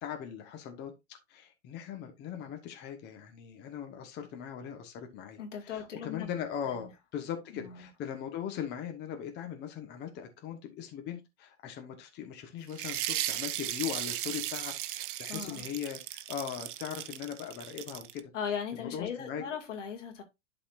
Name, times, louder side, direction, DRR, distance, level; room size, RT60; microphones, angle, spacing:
voice 1, 0.0-0.9 1.3-18.2 18.8-19.4, left 9 dB, 30° left, 1.2 m, -40 dB
voice 2, 5.4-6.3 6.6-6.9 7.5-7.9 15.3-15.7 18.3-20.2, left 7 dB, 75° left, 2.2 m, -38 dB
sound 1, 12.7-18.2, right 13 dB, 45° right, 0.7 m, -36 dB
11.5 x 4.2 x 2.5 m
hypercardioid pair, 125°, 37 cm